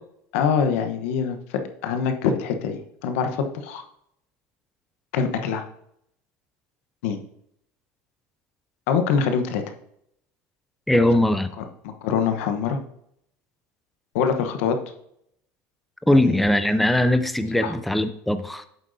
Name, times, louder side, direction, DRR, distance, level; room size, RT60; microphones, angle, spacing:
voice 1, 0.3-3.8 5.1-5.6 7.0-7.2 8.9-9.6 11.6-12.8 14.1-14.8 16.1-16.4 17.6-17.7, left 6 dB, 85° left, 7 dB, 1.0 m, -24 dB
voice 2, 10.9-11.5 16.1-18.6, left 1 dB, ahead, 10 dB, 0.4 m, -20 dB
8.4 x 7.5 x 2.7 m, 0.74 s
supercardioid pair, 125°, 7 cm